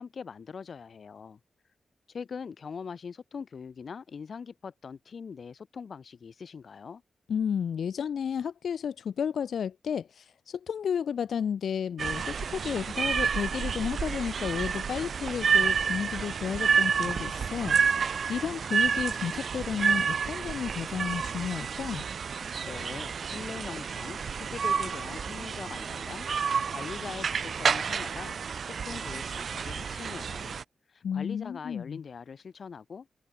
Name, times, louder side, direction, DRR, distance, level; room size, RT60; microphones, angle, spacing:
voice 1, 0.0-1.4 2.1-7.0 22.6-28.4 28.6-30.6 30.9-33.1, left 6 dB, 50° left, 4.9 m, -42 dB
voice 2, 7.3-17.8 18.3-22.1 31.0-32.0, left 7 dB, 80° left, 1.6 m, -32 dB
sound 1, 12.0-30.6, right 6 dB, 55° right, 1.0 m, -30 dB
wide cardioid pair, 175°, 0 cm